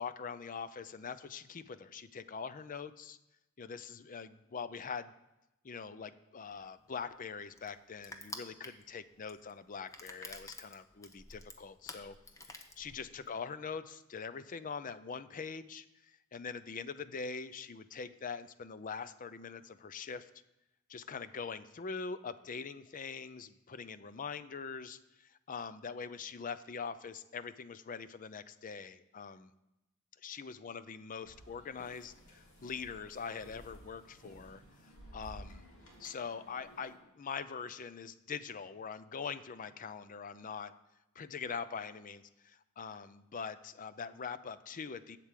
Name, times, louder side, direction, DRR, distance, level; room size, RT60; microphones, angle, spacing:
voice 1, 0.0-3.2 3.6-5.1 5.6-12.2 12.4-20.3 20.9-29.5 30.2-35.6 36.0-40.7 41.2-45.2, left 5 dB, 40° left, 13 dB, 0.5 m, -43 dB
Crushing, 6.5-13.3, left 2 dB, 15° left, 0.8 m, -50 dB
sound 1, 31.3-37.0, equal, 85° left, 2.6 m, -55 dB
8.2 x 7.5 x 7.4 m, 0.94 s
head